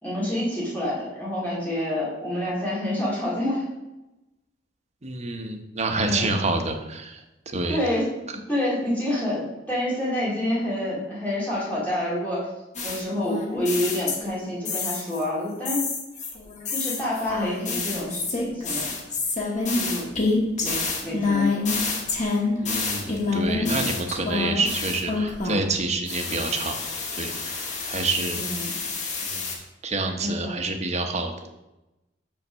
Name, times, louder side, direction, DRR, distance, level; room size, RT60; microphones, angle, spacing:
voice 1, 0.0-3.6 6.0-6.3 7.7-8.0 8.5-12.5 12.8-15.8 16.7-18.9 19.7-20.0 20.6-21.6 23.6-23.9 28.3-28.7 30.2-30.7, left 1 dB, 10° left, -9 dB, 2.1 m, -28 dB
voice 2, 5.0-7.8 22.6-26.8 27.2-28.4 29.2-29.5 29.8-31.3, right 3 dB, 35° right, 4 dB, 0.8 m, -28 dB
sound 1, 12.7-14.4 14.6-15.2 15.6-25.7 26.1-29.5, left 3 dB, 40° left, 1.3 m, -28 dB
5.7 x 4.4 x 6.2 m, 0.98 s
head